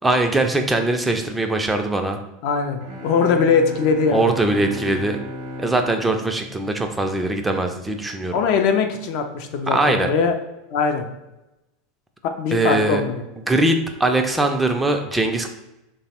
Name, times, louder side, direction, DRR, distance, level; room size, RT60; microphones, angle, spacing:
voice 1, 0.0-2.2 4.1-5.2 5.6-8.4 9.7-10.1 12.5-13.0 13.5-15.5, right 2 dB, 10° right, 4 dB, 0.3 m, -21 dB
voice 2, 2.4-4.3 8.3-10.3 10.7-11.1 12.4-13.2, left 5 dB, 60° left, 5 dB, 0.4 m, -21 dB
sound 1, 2.8-7.5, left 1 dB, 65° right, 0.6 m, -36 dB
3.1 x 2.0 x 2.8 m, 0.96 s
hypercardioid pair, 95°, 0 cm